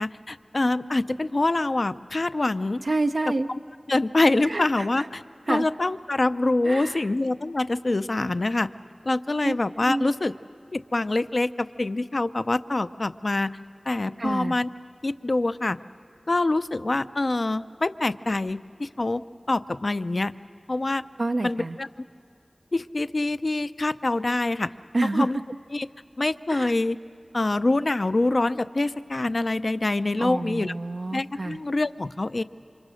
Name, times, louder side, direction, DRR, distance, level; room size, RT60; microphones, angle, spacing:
voice 1, 0.0-2.8 3.5-3.6 3.9-5.2 5.5-8.7 9.0-10.3 10.7-13.5 13.9-14.7 15.0-15.8 16.3-20.3 20.7-21.0 21.4-21.9 22.7-24.7 25.1-25.4 25.7-25.9 26.2-27.0 27.3-30.7 31.1-32.4, left 2 dB, 60° left, 12 dB, 0.5 m, -25 dB
voice 2, 2.8-3.5 4.5-5.1 5.5-5.7 6.6-7.0 9.4-9.5 9.8-10.1 14.2-14.6 21.2-21.8 24.9-25.3 26.5-26.7 30.2-31.6, right 2 dB, 70° right, 4 dB, 0.5 m, -28 dB
29.0 x 26.0 x 6.3 m, 2.7 s
wide cardioid pair, 55°, 0 cm